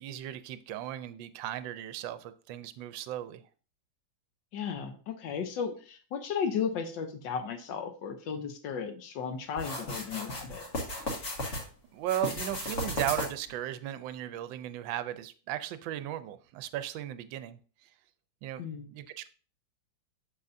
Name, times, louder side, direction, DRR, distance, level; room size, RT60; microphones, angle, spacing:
voice 1, 0.0-3.4 11.9-17.9 18.4-18.6 18.9-19.3, right 12 dB, 75° right, 1.2 m, -36 dB
voice 2, 4.5-10.6 18.6-18.9, left 6 dB, 70° left, 1.4 m, -35 dB
sound 1, 9.6-11.6 12.0-13.5, left 1 dB, 40° left, 1.7 m, -35 dB
7.4 x 6.7 x 2.6 m
omnidirectional pair, 2.2 m